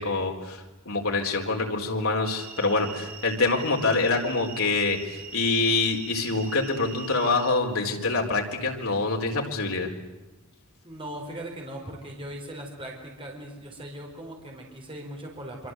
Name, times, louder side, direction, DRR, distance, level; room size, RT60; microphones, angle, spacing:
voice 1, 0.0-9.9, left 3 dB, 70° left, 2 dB, 4.0 m, -26 dB
sound 1, 2.2-7.6, right 7 dB, 80° right, 3.5 m, -42 dB
voice 2, 10.8-15.7, right 1 dB, 25° right, 0 dB, 4.5 m, -39 dB
26.0 x 25.0 x 8.0 m, 1.1 s
head